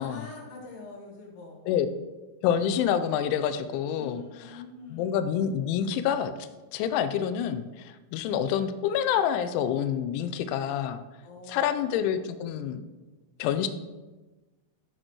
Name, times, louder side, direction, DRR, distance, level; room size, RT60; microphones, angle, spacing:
voice 1, 0.0-1.7 3.9-5.2 11.2-11.9, left 3 dB, 70° left, 0 dB, 2.9 m, -44 dB
voice 2, 2.4-4.2 4.9-6.3 6.7-11.0 11.5-12.8 13.4-13.7, left 9 dB, 85° left, 10 dB, 3.0 m, -27 dB
11.5 x 6.5 x 3.0 m, 1.2 s
omnidirectional pair, 5.4 m